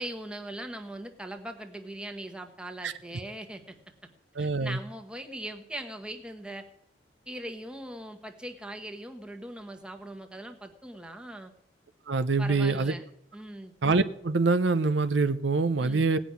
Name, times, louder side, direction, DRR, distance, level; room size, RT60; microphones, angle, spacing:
voice 1, 0.0-3.8 4.4-6.7 7.3-11.5 12.4-13.0 13.3-13.7 15.8-16.1, right 1 dB, 5° right, 5 dB, 1.3 m, -40 dB
voice 2, 4.4-4.8 12.1-12.9 13.8-16.2, right 3 dB, 70° right, 12 dB, 0.7 m, -25 dB
17.5 x 6.1 x 9.6 m, 0.72 s
head